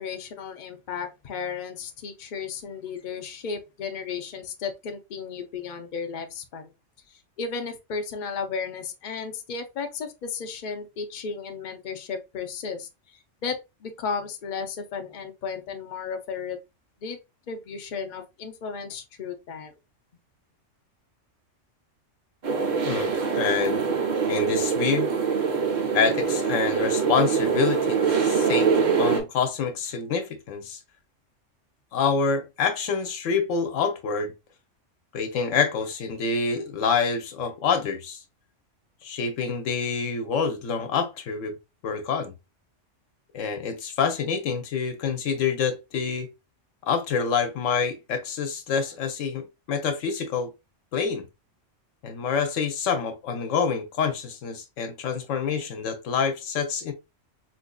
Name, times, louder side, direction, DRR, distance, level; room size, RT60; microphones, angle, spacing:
voice 1, 0.0-6.7 7.1-16.6 17.0-17.2 17.5-19.7, left 5 dB, 50° left, 0.6 m, -34 dB
sound 1, 22.4-29.2, right 6 dB, 45° right, 0.7 m, -24 dB
voice 2, 22.8-23.8 24.3-25.1 25.9-28.7 29.0-30.8 31.9-34.3 35.1-38.2 39.0-41.6 41.8-42.3 43.3-46.3 46.8-50.5 50.9-51.3 52.0-56.9, left 5 dB, 80° left, 1.1 m, -27 dB
4.2 x 2.6 x 2.2 m
omnidirectional pair, 1.3 m